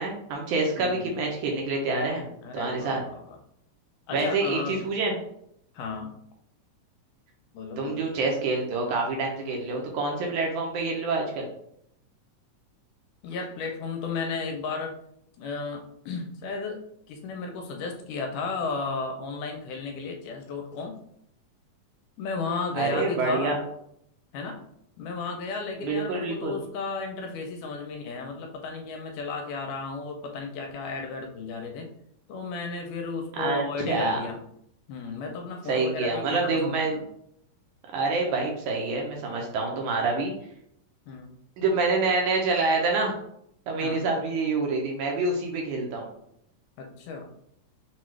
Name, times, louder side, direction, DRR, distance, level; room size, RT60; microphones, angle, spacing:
voice 1, 0.0-2.3 2.5-3.0 4.1-5.1 7.8-11.5 22.7-23.6 25.8-26.6 33.3-34.2 35.7-37.0 37.9-40.3 41.6-43.2 43.7-46.1, right 3 dB, 75° right, 0 dB, 2.0 m, -27 dB
voice 2, 2.4-3.4 4.1-4.8 5.7-6.1 7.5-8.0 13.2-15.0 15.4-21.0 22.2-23.6 24.3-24.6 25.0-31.9 32.3-34.4 34.9-36.8 41.1-41.4 43.8-44.1 46.8-47.3, left 4 dB, 80° left, 3 dB, 2.0 m, -34 dB
5.8 x 2.4 x 3.1 m, 0.72 s
omnidirectional pair, 3.8 m